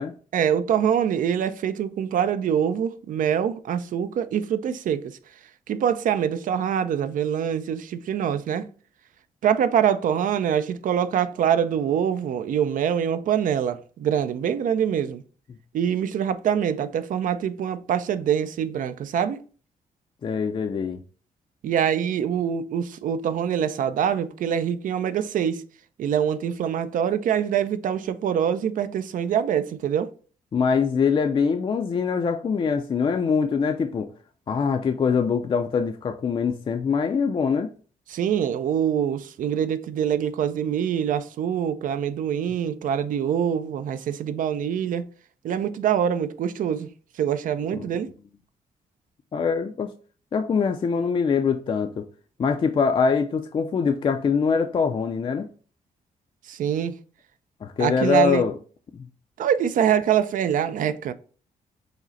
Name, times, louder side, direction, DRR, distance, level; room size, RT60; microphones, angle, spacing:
voice 1, 0.3-5.2 5.7-8.7 9.4-15.2 15.7-19.4 21.6-25.6 26.0-30.1 38.1-45.1 45.4-48.1 56.4-57.0 57.8-58.5 59.4-61.1, right 8 dB, 65° right, 0.4 m, -24 dB
voice 2, 20.2-21.0 30.5-34.1 34.5-37.7 47.8-47.9 49.3-49.9 50.3-52.1 52.4-55.5 57.6-58.5 58.9-59.1, left 5 dB, 35° left, 0.4 m, -23 dB
4.8 x 2.1 x 4.0 m
cardioid pair, 100°, 15 cm